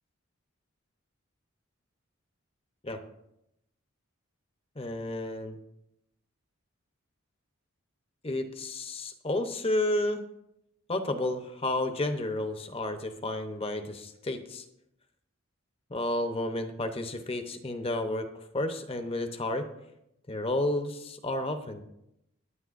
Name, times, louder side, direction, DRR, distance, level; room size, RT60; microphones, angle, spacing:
voice 1, 4.8-5.6 8.2-10.2 10.9-14.6 15.9-18.3 18.5-19.7 20.3-21.8, left 1 dB, 25° left, 7 dB, 0.8 m, -31 dB
21.0 x 9.1 x 2.5 m, 0.83 s
head